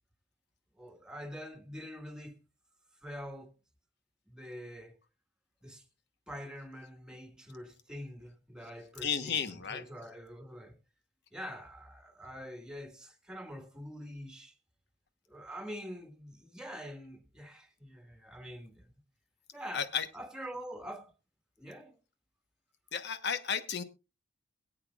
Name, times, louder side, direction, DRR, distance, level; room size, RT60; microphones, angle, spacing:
voice 1, 0.7-2.4 3.0-3.5 4.3-5.0 5.6-5.8 6.3-10.8 11.3-14.6 15.3-18.9 19.5-19.9 20.1-21.1 21.6-22.0, equal, 5° right, 1.6 m, -45 dB
voice 2, 9.0-9.8 19.7-20.1 22.9-23.8, left 7 dB, 60° left, 1.0 m, -33 dB
22.0 x 8.8 x 2.3 m
head